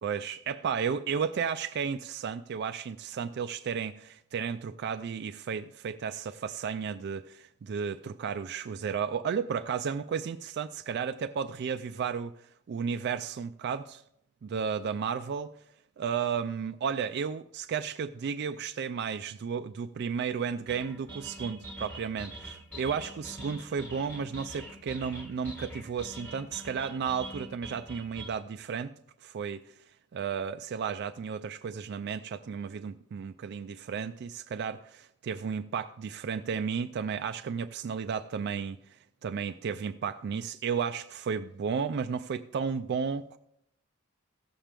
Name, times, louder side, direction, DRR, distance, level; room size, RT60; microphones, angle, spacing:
voice 1, 0.0-12.3 12.7-14.0 14.4-15.5 16.0-28.9 29.2-29.6 30.1-38.8 39.2-43.4, right 6 dB, 50° right, 0.3 m, -33 dB
sound 1, 20.7-28.3, right 1 dB, 10° left, 1.2 m, -44 dB
16.0 x 7.4 x 3.4 m
head